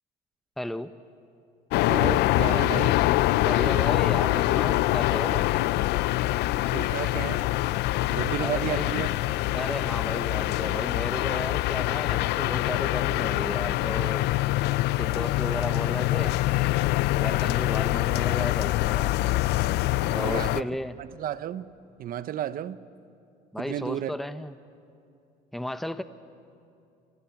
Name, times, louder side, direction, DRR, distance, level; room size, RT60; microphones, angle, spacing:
voice 1, 0.6-0.9 2.8-2.9 3.4-5.5 8.4-9.0 9.5-14.3 15.0-16.4 17.2-19.1 20.1-20.9 23.5-24.5 25.5-26.0, left 1 dB, ahead, 0.8 m, -34 dB
sound 1, 1.7-20.6, left 17 dB, 80° left, 0.5 m, -25 dB
voice 2, 1.9-3.0 6.7-7.5 8.1-9.2 20.1-20.7 21.0-21.7 22.0-22.8 23.6-24.1, right 10 dB, 60° right, 0.8 m, -32 dB
28.0 x 27.5 x 5.9 m
cardioid pair, 110°, 17 cm